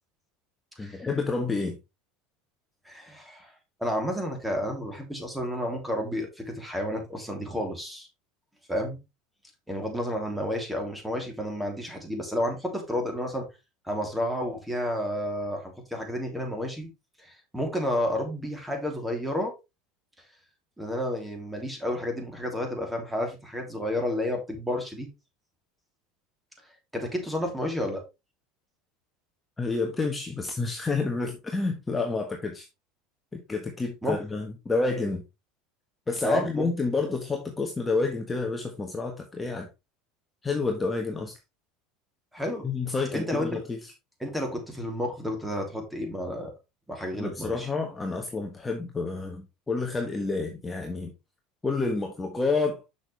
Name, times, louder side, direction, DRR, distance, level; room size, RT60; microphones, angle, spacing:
voice 1, 0.8-1.8 29.6-32.7 33.3-35.2 36.1-39.7 40.4-41.4 42.6-43.9 47.1-51.1 51.6-52.8, left 3 dB, 15° left, 1.3 m, -29 dB
voice 2, 2.8-3.5 3.8-8.1 8.7-9.0 9.7-13.5 13.8-16.9 17.2-19.5 20.8-25.1 26.9-28.0 34.0-34.2 36.2-36.7 42.3-42.7 43.1-43.5 44.2-46.5 46.9-47.7, left 1 dB, 5° right, 3.0 m, -31 dB
6.6 x 6.2 x 3.3 m
supercardioid pair, 110°, 0 cm